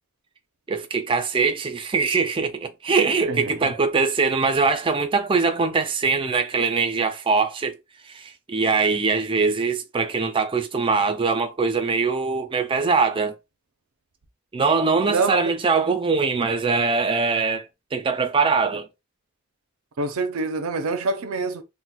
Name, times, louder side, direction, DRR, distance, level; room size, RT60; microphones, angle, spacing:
voice 1, 0.7-7.8 8.0-13.3 14.5-18.9, right 4 dB, 25° right, 0.4 m, -22 dB
voice 2, 3.3-3.7 15.1-15.4 20.0-21.6, right 3 dB, 75° right, 0.5 m, -26 dB
4.0 x 2.1 x 2.2 m
head